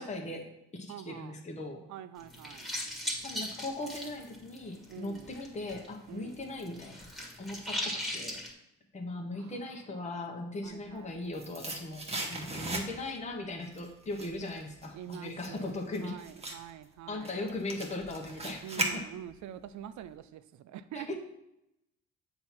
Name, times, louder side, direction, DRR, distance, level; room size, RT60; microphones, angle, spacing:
voice 1, 0.0-1.8 3.2-7.1 7.4-8.4 8.9-12.0 12.3-16.2 17.1-19.0 20.9-21.2, left 2 dB, 25° left, 1 dB, 1.1 m, -39 dB
voice 2, 0.9-1.4 1.9-2.7 4.9-5.4 6.1-6.4 9.3-9.6 10.6-11.2 14.9-17.4 18.6-21.2, right 11 dB, 70° right, 13 dB, 0.5 m, -46 dB
sound 1, 2.2-5.9 6.1-8.5, left 1 dB, ahead, 1.8 m, -38 dB
sound 2, 10.8-13.2 13.6-19.5 19.8-19.9, right 2 dB, 20° right, 1.1 m, -38 dB
7.5 x 2.9 x 5.8 m, 0.85 s
cardioid pair, 90°, 30 cm